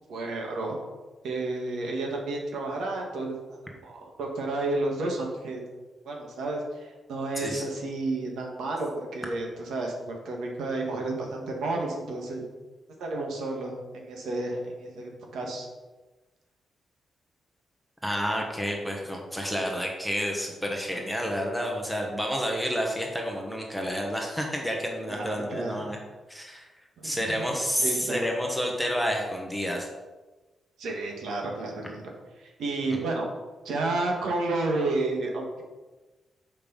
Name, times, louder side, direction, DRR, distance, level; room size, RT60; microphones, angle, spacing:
voice 1, 0.1-0.8 1.2-5.6 6.1-12.5 13.0-15.7 25.1-25.8 27.0-27.5 27.8-28.2 30.8-32.0 32.4-33.3 33.6-35.6, right 2 dB, 85° right, 0 dB, 1.8 m, -31 dB
voice 2, 18.0-26.0 26.3-26.7 27.0-29.9, equal, ahead, 0 dB, 1.3 m, -29 dB
6.9 x 5.2 x 5.5 m, 1.2 s
wide cardioid pair, 145°, 0 cm